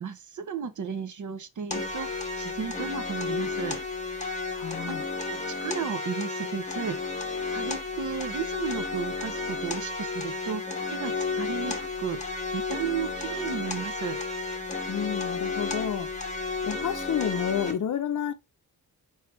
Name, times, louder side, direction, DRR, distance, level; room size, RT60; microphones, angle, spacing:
voice 1, 0.0-3.8 4.9-5.0 5.3-7.2 7.5-14.2, right 7 dB, 55° right, 0.6 m, -34 dB
sound 1, 1.7-17.7, left 3 dB, 20° left, 0.8 m, -32 dB
voice 2, 4.5-5.0 14.9-16.1 16.6-18.3, left 8 dB, 55° left, 0.5 m, -30 dB
4.7 x 3.2 x 3.0 m
wide cardioid pair, 135°, 37 cm